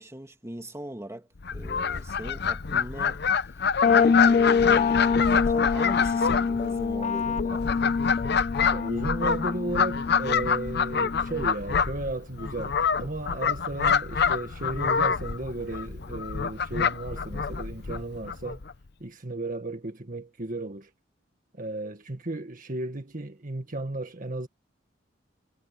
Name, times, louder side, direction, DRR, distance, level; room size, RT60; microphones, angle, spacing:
voice 1, 0.0-7.7, right 1 dB, 15° right, 2.3 m, -40 dB
Fowl, 1.4-18.7, left 6 dB, 60° left, 0.8 m, -27 dB
sound 1, 3.8-11.4, left 5 dB, 40° left, 0.3 m, -25 dB
voice 2, 8.7-18.6 19.0-20.9 21.5-24.5, right 2 dB, 45° right, 1.8 m, -34 dB
head